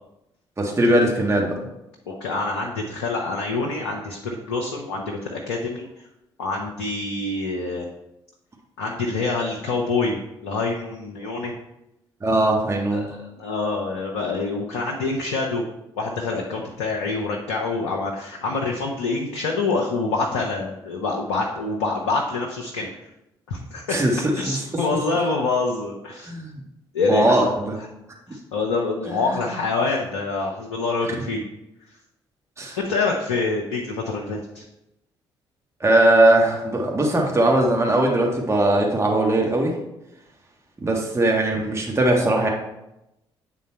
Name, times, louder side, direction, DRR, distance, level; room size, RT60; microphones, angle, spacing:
voice 1, 0.6-1.6 12.2-13.1 23.9-24.6 26.3-26.6 27.1-27.4 29.1-29.4 32.6-32.8 35.8-39.8 40.8-42.5, right 1 dB, 20° right, 0 dB, 1.5 m, -20 dB
voice 2, 2.1-5.9 6.4-7.9 8.8-10.2 10.4-11.5 12.9-15.6 16.0-22.9 23.5-24.0 24.4-26.3 26.9-27.5 27.8-27.9 28.3-31.4 32.8-34.6, left 3 dB, 80° left, 0 dB, 0.7 m, -26 dB
8.3 x 3.8 x 4.4 m, 0.89 s
figure-of-eight pair, 45°, 13 cm